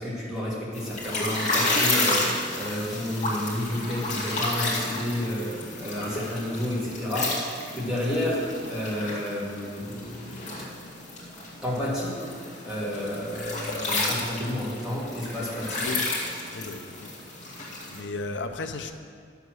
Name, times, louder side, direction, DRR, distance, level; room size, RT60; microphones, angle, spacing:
voice 1, 0.0-7.3 7.7-10.7 11.6-12.2 12.6-16.0, left 1 dB, 5° right, -8 dB, 2.9 m, -30 dB
sound 1, 0.7-18.0, left 2 dB, 40° left, 2.2 m, -31 dB
voice 2, 16.5-17.1 17.9-18.9, left 3 dB, 70° left, 6 dB, 0.8 m, -34 dB
10.5 x 7.1 x 6.3 m, 2.1 s
head